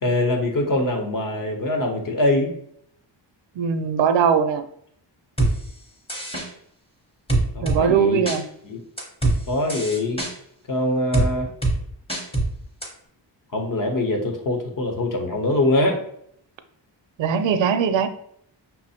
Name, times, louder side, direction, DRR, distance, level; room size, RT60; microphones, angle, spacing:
voice 1, 0.0-2.5 7.5-8.2 8.6-8.8 9.5-10.2 10.7-11.5 13.5-16.0, left 2 dB, 45° left, 3 dB, 0.8 m, -23 dB
voice 2, 3.6-4.6 7.6-8.4 17.2-18.1, right 7 dB, 75° right, 9 dB, 0.5 m, -20 dB
sound 1, 5.4-5.5 6.1-6.5 7.3-7.8 8.3-8.4 9.0-9.4 9.7-10.3 11.1-11.3 11.6-11.8 12.1-12.5 12.8-12.9, right 2 dB, 10° left, 0.8 m, -22 dB
5.5 x 2.1 x 4.1 m, 0.69 s
wide cardioid pair, 175°, 45 cm